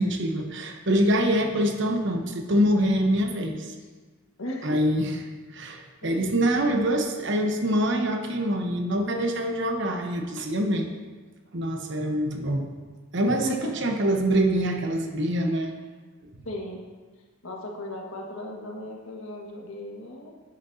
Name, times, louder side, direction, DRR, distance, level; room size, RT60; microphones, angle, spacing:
voice 1, 0.0-3.7 4.6-5.1 5.5-10.9 11.5-12.7 13.1-15.7, right 1 dB, 55° right, 3 dB, 1.0 m, -25 dB
voice 2, 4.4-4.8 6.0-6.3 13.4-13.8 16.4-16.8 17.4-20.3, left 1 dB, 70° left, -1 dB, 1.6 m, -36 dB
10.5 x 9.4 x 2.8 m, 1.4 s
head